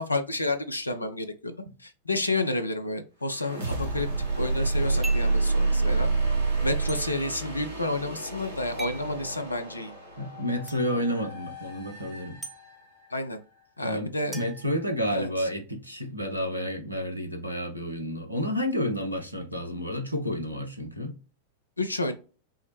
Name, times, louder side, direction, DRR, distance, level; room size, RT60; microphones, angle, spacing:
voice 1, 0.0-1.5 1.8-4.1 4.4-6.1 6.6-9.9 13.1-13.4 13.8-14.4 15.1-15.5 21.8-22.1, left 2 dB, 85° left, 0.5 m, -30 dB
sound 1, 3.3-13.1, right 3 dB, 70° right, 1.6 m, -29 dB
sound 2, 5.0-5.4 6.9-7.0 8.8-9.1 10.7-10.8 12.4-12.6 14.3-15.4, right 2 dB, 10° right, 0.8 m, -41 dB
voice 2, 10.2-12.4 13.8-21.1, equal, 90° right, 0.8 m, -30 dB
5.5 x 2.1 x 3.1 m
figure-of-eight pair, 90°, 0 cm